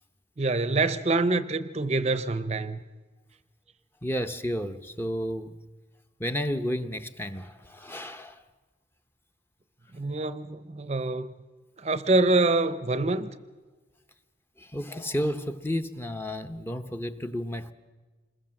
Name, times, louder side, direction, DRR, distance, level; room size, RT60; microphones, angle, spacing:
voice 1, 0.4-2.8 9.9-11.3 11.8-13.3, right 2 dB, 35° right, 0.6 m, -25 dB
voice 2, 4.0-5.5 6.2-8.4 14.6-17.7, equal, 10° left, 0.8 m, -32 dB
26.5 x 21.0 x 7.6 m
head